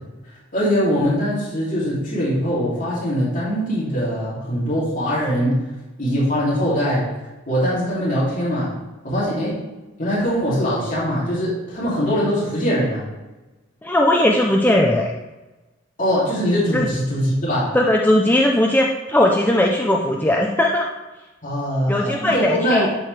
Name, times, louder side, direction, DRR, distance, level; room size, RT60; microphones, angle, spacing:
voice 1, 0.5-5.6 6.0-7.1 7.5-8.7 9.0-9.6 10.0-13.1 16.0-17.8 21.4-22.9, equal, 45° left, -8 dB, 2.8 m, -22 dB
voice 2, 13.8-15.1 16.7-16.9 17.7-20.9 21.9-22.9, left 1 dB, 10° left, 0 dB, 0.5 m, -18 dB
11.0 x 4.9 x 3.3 m, 1.1 s
head